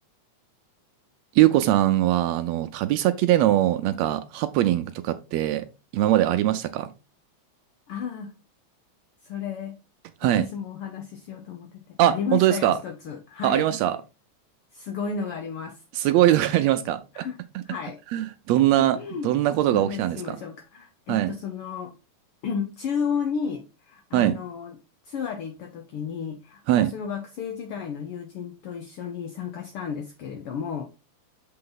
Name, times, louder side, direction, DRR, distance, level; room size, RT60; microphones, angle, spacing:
voice 1, 1.3-5.7 5.9-6.9 10.2-10.5 12.0-12.8 13.4-14.0 15.9-17.2 18.1-19.0 19.2-20.4 21.1-21.3 24.1-24.4 26.7-26.9, right 13 dB, 80° right, 1.6 m, -21 dB
voice 2, 7.9-8.3 9.2-9.8 10.2-13.7 14.7-15.8 17.1-17.4 17.6-18.0 18.8-19.3 19.7-21.9 22.4-24.8 25.0-30.8, left 6 dB, 75° left, 1.3 m, -33 dB
6.8 x 4.3 x 3.8 m
omnidirectional pair, 3.3 m